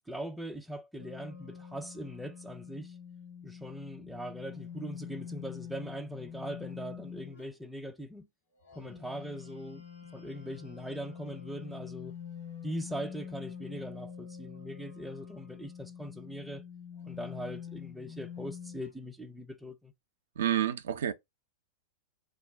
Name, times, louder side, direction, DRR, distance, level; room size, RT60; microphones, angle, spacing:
voice 1, 0.1-3.0 3.4-8.3 8.7-9.8 10.1-12.1 12.6-16.6 17.0-19.9, equal, 5° right, 0.4 m, -41 dB
sound 1, 1.0-7.5 8.6-18.9, left 8 dB, 75° left, 1.3 m, -46 dB
voice 2, 20.4-21.1, right 10 dB, 70° right, 0.3 m, -29 dB
2.3 x 2.1 x 3.4 m
hypercardioid pair, 100°, 0 cm